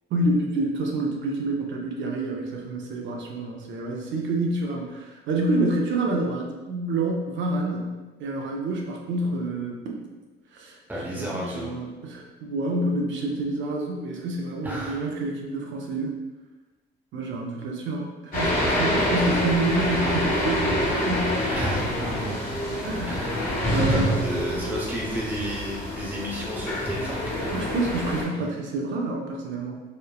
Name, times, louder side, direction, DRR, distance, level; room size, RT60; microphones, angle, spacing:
voice 1, 0.1-10.2 10.5-16.2 17.1-21.4 22.8-23.1 23.7-24.2 27.5-29.8, right 2 dB, 70° right, 0 dB, 0.5 m, -28 dB
voice 2, 10.9-11.8 14.6-15.1 21.5-22.4 23.1-27.6, equal, 10° right, -5 dB, 0.7 m, -32 dB
sound 1, 18.3-28.2, left 1 dB, 45° left, 1.1 m, -26 dB
3.1 x 2.1 x 2.2 m, 1.2 s
cardioid pair, 90°, 20 cm